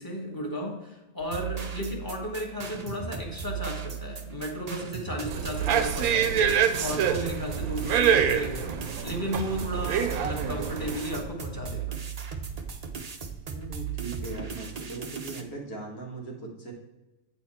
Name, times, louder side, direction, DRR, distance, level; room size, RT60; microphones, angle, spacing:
voice 1, 0.0-12.0, equal, 15° left, 0 dB, 1.3 m, -34 dB
sound 1, 1.2-15.4, right 6 dB, 45° right, 0.5 m, -37 dB
sound 2, 5.3-11.2, right 8 dB, 85° right, 1.1 m, -26 dB
voice 2, 13.5-16.7, right 3 dB, 85° left, -1 dB, 2.2 m, -39 dB
8.6 x 4.3 x 4.3 m, 1.1 s
omnidirectional pair, 1.5 m